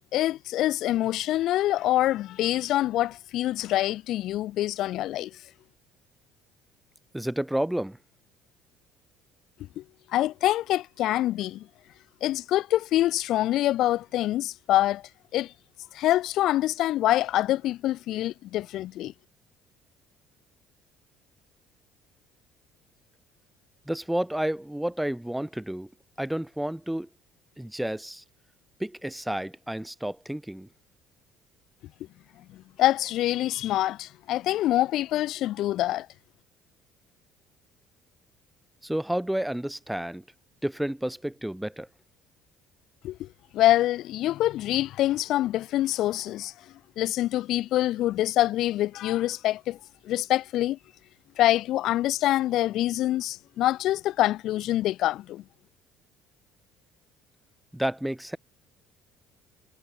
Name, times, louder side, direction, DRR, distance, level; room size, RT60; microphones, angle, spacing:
voice 1, 0.1-5.3 9.8-9.9 10.1-11.7 12.2-15.0 15.3-15.5 15.9-19.1 32.8-36.1 43.0-43.3 43.5-46.5 47.0-49.8 50.0-50.8 51.4-55.4, left 14 dB, 55° left, 0.5 m, -25 dB
voice 2, 7.1-8.0 23.9-25.9 26.2-27.1 27.6-28.2 28.8-30.7 38.8-40.2 40.6-41.9 57.7-58.4, right 1 dB, 5° right, 2.5 m, -30 dB
figure-of-eight pair, 55°, 0 cm